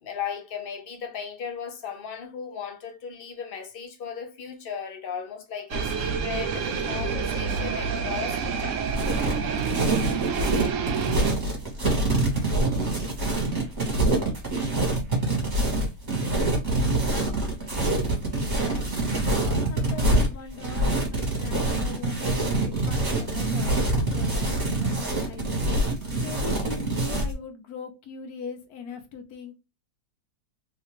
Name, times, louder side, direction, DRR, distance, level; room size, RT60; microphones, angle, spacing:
voice 1, 0.0-8.8, left 7 dB, 55° left, 0.6 m, -36 dB
sound 1, 5.7-11.3, right 5 dB, 60° right, 0.9 m, -28 dB
sound 2, 8.9-27.3, right 2 dB, 30° right, 1.3 m, -25 dB
voice 2, 18.3-25.5 26.2-29.6, left 5 dB, 70° left, 1.3 m, -41 dB
3.3 x 2.8 x 3.1 m
omnidirectional pair, 1.7 m